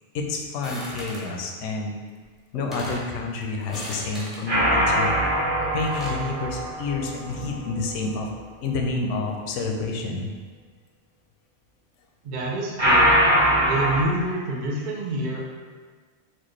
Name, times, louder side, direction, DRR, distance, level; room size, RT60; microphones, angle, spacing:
voice 1, 0.1-1.9 2.5-5.2 5.7-8.3 8.6-10.3, left 3 dB, 85° left, 2 dB, 0.9 m, -29 dB
sound 1, 0.6-1.3 2.2-2.3 2.5-3.1 3.6-4.4 5.6-6.2, equal, ahead, 0.7 m, -37 dB
sound 2, 4.5-7.8 12.8-14.0, equal, 20° right, 1.2 m, -22 dB
voice 2, 12.2-13.1 13.6-15.4, right 2 dB, 60° right, -2 dB, 0.5 m, -27 dB
4.3 x 2.4 x 3.0 m, 1.5 s
omnidirectional pair, 1.2 m